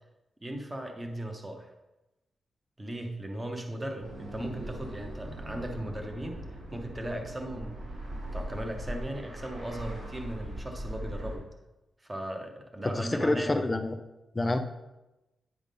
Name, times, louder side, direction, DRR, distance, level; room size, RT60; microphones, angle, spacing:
voice 1, 0.4-1.7 2.8-6.4 6.7-7.8 8.1-11.4 12.0-13.5, right 1 dB, 15° right, 3 dB, 0.7 m, -37 dB
sound 1, 4.0-11.4, equal, 75° right, 2.2 m, -40 dB
voice 2, 13.0-14.0 14.3-14.6, left 2 dB, 20° left, 7 dB, 0.4 m, -27 dB
9.1 x 3.5 x 5.3 m, 1.0 s
wide cardioid pair, 155°, 0 cm